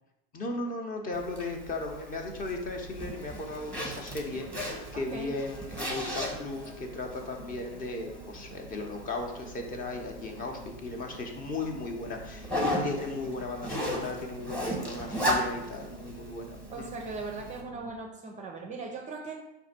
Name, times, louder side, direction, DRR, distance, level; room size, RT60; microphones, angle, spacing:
voice 1, 0.3-16.9, left 2 dB, 25° left, 3 dB, 0.7 m, -36 dB
sound 1, 1.0-18.0, equal, 70° left, 1.3 m, -50 dB
Zipper (clothing), 1.1-17.6, equal, 5° left, 1.0 m, -37 dB
voice 2, 4.9-5.4 16.7-19.4, right 3 dB, 25° right, 2 dB, 0.5 m, -39 dB
4.8 x 2.6 x 4.2 m, 0.93 s
hypercardioid pair, 95°, 32 cm